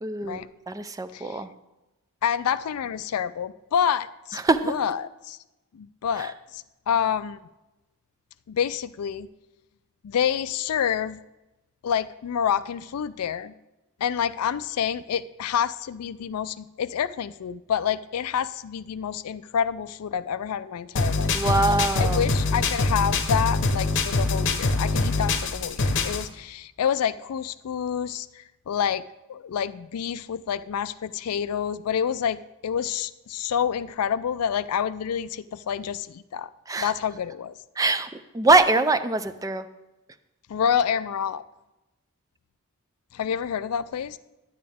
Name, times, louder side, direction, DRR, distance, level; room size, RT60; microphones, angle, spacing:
voice 1, 0.0-0.4 0.7-1.5 4.4-4.6 21.2-22.2 36.7-36.9 37.8-38.1 38.3-39.6, right 3 dB, 15° right, 11 dB, 0.4 m, -22 dB
voice 2, 2.2-4.4 4.6-5.4 5.7-7.4 8.5-9.3 10.0-11.2 11.8-13.5 14.0-21.3 21.7-28.3 28.7-29.0 29.3-36.5 36.8-37.5 40.5-41.4 43.1-44.2, left 8 dB, 85° left, 15 dB, 0.4 m, -28 dB
sound 1, 21.0-26.3, left 3 dB, 55° left, 0.8 m, -24 dB
10.5 x 9.4 x 3.5 m, 0.99 s
head